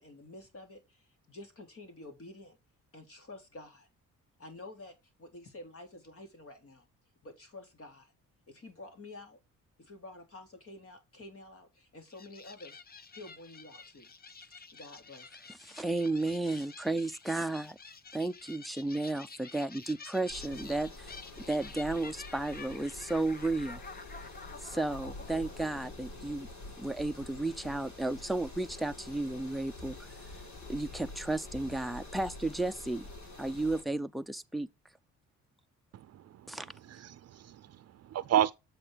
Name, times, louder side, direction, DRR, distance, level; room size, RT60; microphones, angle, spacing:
voice 1, 0.0-2.6 2.9-3.9 4.4-6.9 7.2-8.1 8.5-9.4 9.8-12.8 13.1-14.1 14.4-15.4, left 2 dB, 50° left, 3.4 m, -50 dB
sound 1, 12.1-26.7, left 4 dB, 30° left, 0.9 m, -50 dB
voice 2, 15.6-17.8 18.1-21.2 21.5-23.8 24.6-26.5 26.8-30.0 30.7-33.0 33.4-34.7 36.5-36.7, right 2 dB, ahead, 0.6 m, -33 dB
sound 2, 20.3-33.8, left 2 dB, 70° left, 3.8 m, -47 dB
voice 3, 36.1-36.6 36.9-38.5, right 11 dB, 55° right, 0.6 m, -32 dB
8.0 x 6.2 x 3.5 m
cardioid pair, 90°, 30 cm